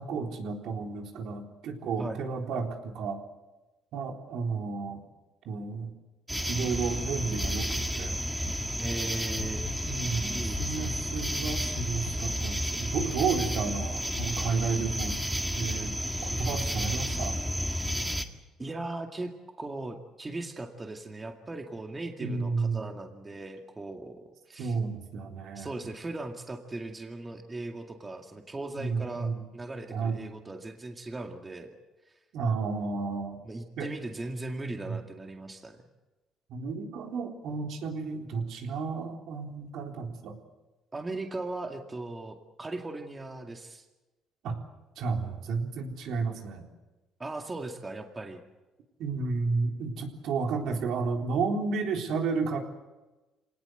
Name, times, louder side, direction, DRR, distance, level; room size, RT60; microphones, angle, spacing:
voice 1, 0.0-3.2 3.9-5.0 5.5-5.9 6.5-8.2 9.9-15.3 15.6-17.4 22.2-22.8 24.6-25.8 28.8-29.4 29.9-30.2 32.3-33.4 33.8-33.9 34.9-35.0 36.5-40.4 44.4-44.6 45.0-46.7 49.0-52.6, right 4 dB, 70° right, 3 dB, 3.9 m, -32 dB
sound 1, 6.3-18.2, equal, 5° right, 2.0 m, -32 dB
sound 2, 8.4-11.4 11.7-15.1, left 7 dB, 90° left, 7.8 m, -43 dB
voice 2, 8.8-9.7 10.3-10.9 18.6-19.3 19.6-24.8 25.6-31.7 33.4-35.8 40.9-43.8 47.2-48.4, right 2 dB, 20° right, 4 dB, 2.2 m, -38 dB
26.5 x 19.0 x 8.0 m, 1.1 s
cardioid pair, 115°, 0 cm